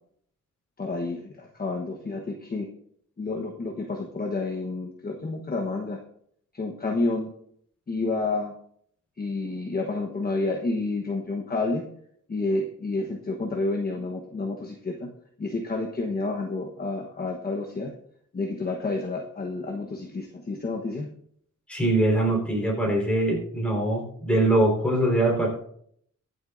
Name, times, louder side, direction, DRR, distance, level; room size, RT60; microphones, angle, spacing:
voice 1, 0.8-2.7 3.2-6.0 6.5-7.3 7.9-8.5 9.2-11.8 12.3-15.1 15.4-17.9 18.3-21.1, left 3 dB, 30° left, 0 dB, 1.2 m, -29 dB
voice 2, 21.7-25.5, right 1 dB, 5° left, -3 dB, 4.5 m, -23 dB
23.0 x 8.0 x 2.6 m, 0.67 s
wide cardioid pair, 140°, 31 cm